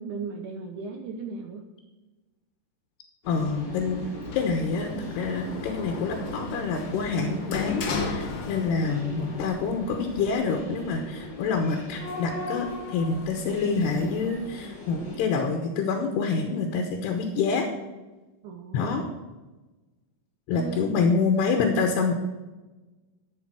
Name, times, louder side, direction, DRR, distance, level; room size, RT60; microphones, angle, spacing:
voice 1, 0.0-1.6 18.4-19.1 20.5-20.9, right 4 dB, 80° right, 3 dB, 1.8 m, -36 dB
sound 1, 3.2-15.2, left 1 dB, 25° left, 5.2 m, -39 dB
voice 2, 3.3-4.0 4.3-17.7 18.7-19.0 20.5-22.1, left 4 dB, 80° left, 4 dB, 3.1 m, -27 dB
Sliding door, 4.2-9.1 9.4-10.3, left 4 dB, 60° left, 1.7 m, -35 dB
12.0 x 7.3 x 6.1 m, 1.2 s
omnidirectional pair, 4.8 m